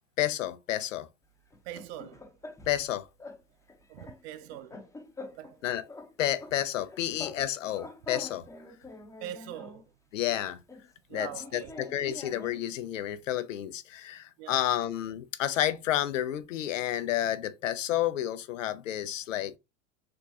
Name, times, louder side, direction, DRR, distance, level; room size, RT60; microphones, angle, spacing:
voice 1, 0.2-1.1 2.7-3.1 5.6-5.8 6.2-8.5 10.1-10.6 11.1-19.6, left 12 dB, 85° left, 0.5 m, -30 dB
sound 1, 1.5-2.9 3.2-3.4 3.7-5.6 5.9-7.4 7.7-9.9 10.7-12.7, left 2 dB, 10° left, 0.7 m, -45 dB
voice 2, 1.6-2.2 3.9-4.8 5.4-5.6 9.2-9.8 11.1-11.8 14.4-14.6, right 12 dB, 60° right, 0.6 m, -42 dB
3.5 x 2.3 x 2.6 m
hypercardioid pair, 90°, 37 cm